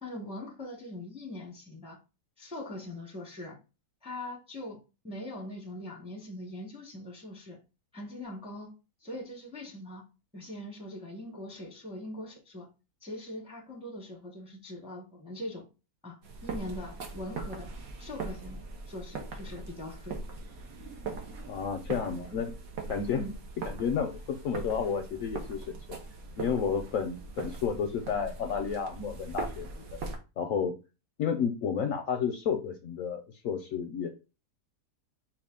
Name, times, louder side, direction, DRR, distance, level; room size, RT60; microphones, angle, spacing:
voice 1, 0.0-2.0 2.4-3.6 4.0-7.6 7.9-8.7 9.0-10.0 10.3-12.7 13.0-15.7 16.0-17.7 18.0-20.2 23.1-23.3, left 1 dB, 5° right, 0.7 m, -42 dB
sound 1, 16.2-30.2, right 3 dB, 65° right, 1.2 m, -41 dB
voice 2, 21.5-22.5 22.9-23.2 23.7-26.0 26.4-30.0 30.4-30.7 31.2-34.1, left 7 dB, 70° left, 0.8 m, -31 dB
4.9 x 2.4 x 3.6 m
omnidirectional pair, 1.7 m